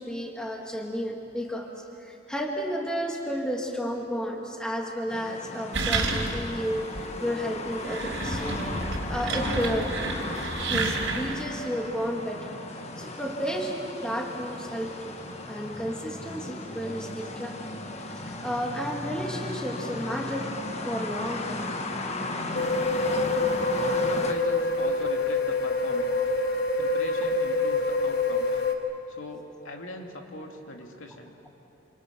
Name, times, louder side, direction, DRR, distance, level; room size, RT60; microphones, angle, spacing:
voice 1, 0.0-8.7 9.1-10.2 10.7-12.6 13.0-15.2 15.5-17.6 18.0-20.6 20.8-21.7, equal, 5° left, 0 dB, 2.0 m, -32 dB
sound 1, 5.1-24.3, left 2 dB, 30° left, 1.4 m, -36 dB
sound 2, 5.7-6.6 6.9-7.0 7.7-11.5, right 3 dB, 75° right, 3.7 m, -30 dB
sound 3, 22.5-28.7, left 2 dB, 50° left, 1.8 m, -26 dB
voice 2, 23.8-26.2 26.8-28.6 29.1-31.3, left 1 dB, 75° left, 2 dB, 2.5 m, -41 dB
27.5 x 27.0 x 6.1 m, 2.9 s
head